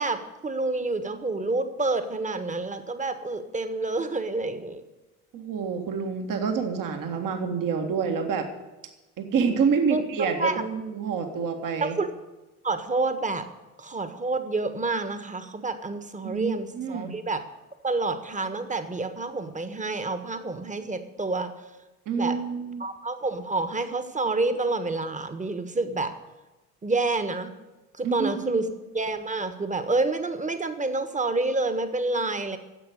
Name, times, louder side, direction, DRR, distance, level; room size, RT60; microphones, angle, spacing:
voice 1, 0.0-4.8 9.9-10.6 11.8-12.1 12.6-13.4 13.8-17.4 17.8-21.5 22.2-22.4 22.8-26.1 26.8-27.5 28.0-28.7 28.9-32.6, right 3 dB, 15° right, 10 dB, 1.5 m, -28 dB
voice 2, 5.3-8.5 9.2-12.0 16.2-17.1 22.1-22.9 28.0-28.7, right 6 dB, 45° right, 4 dB, 1.8 m, -27 dB
12.0 x 7.9 x 10.0 m, 1.1 s
figure-of-eight pair, 55°, 45 cm